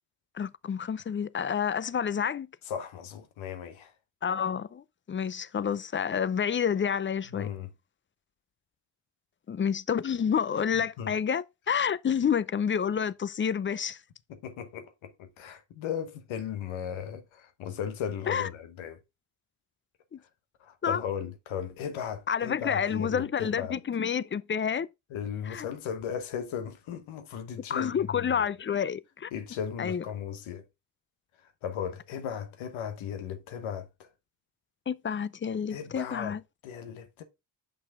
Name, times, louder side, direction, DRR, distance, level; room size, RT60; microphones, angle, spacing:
voice 1, 0.3-2.5 4.2-7.5 9.5-14.0 18.3-18.5 20.1-20.2 20.8-21.0 22.3-24.9 25.5-25.7 27.7-29.3 29.8-30.0 34.9-36.4, left 7 dB, 25° left, 0.5 m, -29 dB
voice 2, 2.7-3.9 7.3-7.7 10.7-11.2 14.3-19.0 20.6-23.8 25.1-28.5 29.3-30.6 31.4-34.1 35.7-36.4 36.6-37.2, left 8 dB, 75° left, 1.1 m, -36 dB
6.6 x 5.3 x 3.5 m
supercardioid pair, 50°, 47 cm